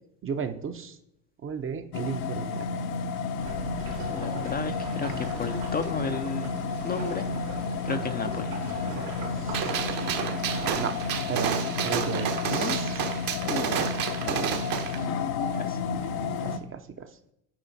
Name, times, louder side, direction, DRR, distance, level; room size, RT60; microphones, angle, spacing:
voice 1, 0.2-1.0 1.4-2.7 9.3-9.9 10.8-11.0 11.3-13.0 14.3-14.5 16.4-17.1, right 6 dB, 30° right, 8 dB, 0.7 m, -35 dB
sound 1, 1.9-16.6, left 4 dB, 65° left, 0.8 m, -31 dB
sound 2, 3.4-10.7, right 4 dB, 80° right, 2.6 m, -40 dB
voice 2, 4.1-6.5 6.8-7.3 7.8-8.5 12.5-12.8 13.4-13.8 14.2-14.4 15.5-15.8, left 5 dB, 25° left, 7 dB, 0.5 m, -33 dB
Gunshot gunfire, 9.5-15.0, right 8 dB, 55° right, 1.2 m, -30 dB
8.9 x 4.9 x 4.1 m, 0.77 s
supercardioid pair, 95°, 41 cm